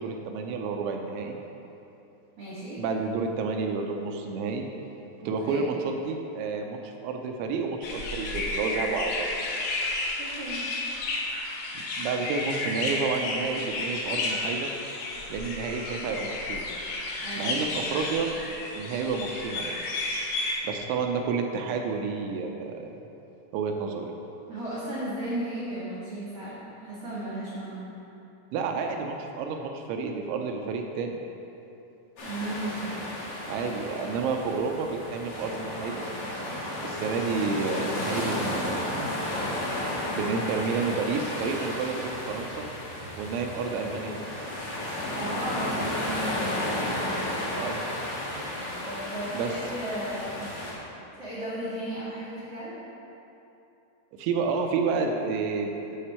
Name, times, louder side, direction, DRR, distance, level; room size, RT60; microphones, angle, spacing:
voice 1, 0.0-1.4 2.8-4.7 5.2-9.3 12.0-14.7 15.3-16.7 17.4-18.3 18.7-19.7 20.6-22.9 23.5-24.1 28.5-31.2 33.5-36.1 36.8-39.1 40.1-42.7 43.2-44.2 47.6-47.8 49.3-49.5 54.2-56.0, right 4 dB, 80° right, 3 dB, 2.8 m, -30 dB
voice 2, 2.4-2.8 5.4-5.7 10.2-10.7 17.2-17.8 24.5-27.9 32.2-33.0 45.1-46.5 46.8-47.3 48.8-50.5 51.2-52.8, right 1 dB, 50° right, -10 dB, 1.9 m, -35 dB
sound 1, 7.8-20.5, left 2 dB, 75° left, 2.2 m, -32 dB
sound 2, 32.2-50.7, left 1 dB, 55° left, 2.1 m, -33 dB
8.4 x 7.7 x 4.3 m, 2.9 s
omnidirectional pair, 5.6 m